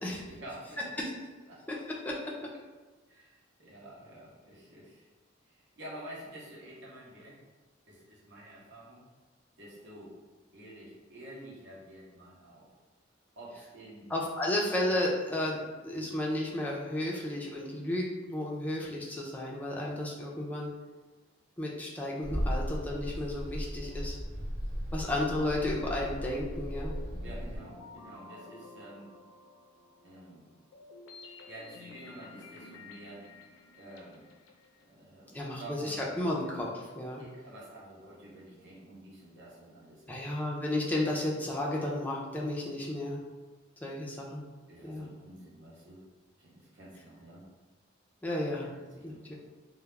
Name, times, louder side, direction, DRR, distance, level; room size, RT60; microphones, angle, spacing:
voice 1, 0.3-1.0 1.5-1.6 3.1-5.1 5.5-7.4 7.9-9.0 9.6-10.1 10.5-12.7 13.4-14.1 27.2-29.1 30.0-30.5 31.2-33.3 33.7-34.3 34.8-36.3 37.2-40.2 44.7-46.0 46.4-47.4 48.6-49.3, right 1 dB, 65° right, -6 dB, 0.8 m, -49 dB
voice 2, 14.1-20.7 21.6-24.2 24.9-26.9 35.3-37.2 40.1-43.2 43.8-44.4 44.8-45.1 48.2-48.7 49.0-49.3, left 1 dB, 10° left, -3 dB, 0.4 m, -33 dB
sound 1, 22.2-27.6, equal, 30° right, 0.7 m, -36 dB
sound 2, 26.5-34.8, left 3 dB, 75° left, 0.4 m, -52 dB
2.3 x 2.0 x 3.1 m, 1.3 s
head